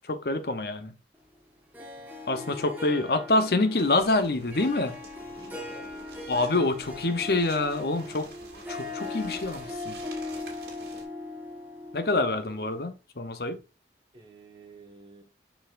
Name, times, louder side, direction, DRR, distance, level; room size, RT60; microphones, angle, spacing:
voice 1, 0.1-0.9 2.3-5.0 6.3-8.3 8.7-10.0 11.9-13.6, left 2 dB, 60° left, 0.8 m, -26 dB
Harp, 1.7-12.9, left 2 dB, 10° right, 1.4 m, -39 dB
voice 2, 1.8-2.3 5.2-6.0 14.1-15.2, right 3 dB, 30° right, 1.4 m, -51 dB
sound 1, 3.7-11.1, right 3 dB, 65° right, 2.2 m, -49 dB
6.8 x 5.6 x 2.5 m
head